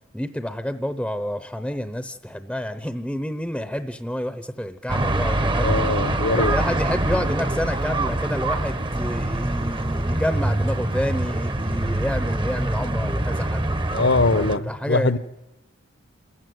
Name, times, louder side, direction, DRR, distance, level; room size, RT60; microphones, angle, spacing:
voice 1, 0.1-5.7 6.3-15.2, equal, 5° left, 10 dB, 0.7 m, -29 dB
sound 1, 4.9-14.6, right 1 dB, 25° right, 0.9 m, -24 dB
voice 2, 5.6-6.5 13.9-15.2, left 3 dB, 60° left, 15 dB, 0.9 m, -21 dB
28.0 x 14.5 x 9.4 m, 0.96 s
head